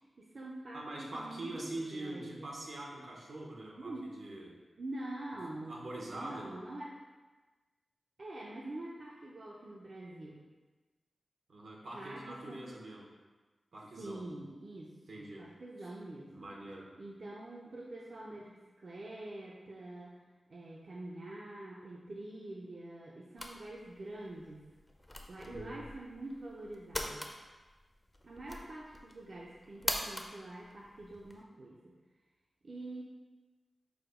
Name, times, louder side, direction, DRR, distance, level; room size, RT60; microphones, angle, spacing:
voice 1, 0.2-2.5 3.8-4.1 4.8-5.8 6.1-7.0 8.2-10.4 11.9-12.7 13.7-16.5 17.0-20.2 20.5-24.7 25.3-27.3 28.2-32.0 32.6-33.0, right 1 dB, 60° right, -3 dB, 0.5 m, -45 dB
voice 2, 0.7-4.6 5.7-6.5 11.5-13.1 13.7-14.3 15.1-15.5 15.8-15.9 16.3-16.9 25.4-25.9, right 1 dB, 80° right, -1 dB, 0.8 m, -44 dB
sound 1, 23.4-31.4, left 1 dB, 20° left, 0.5 m, -43 dB
4.8 x 2.1 x 4.8 m, 1.3 s
wide cardioid pair, 85°, 0 cm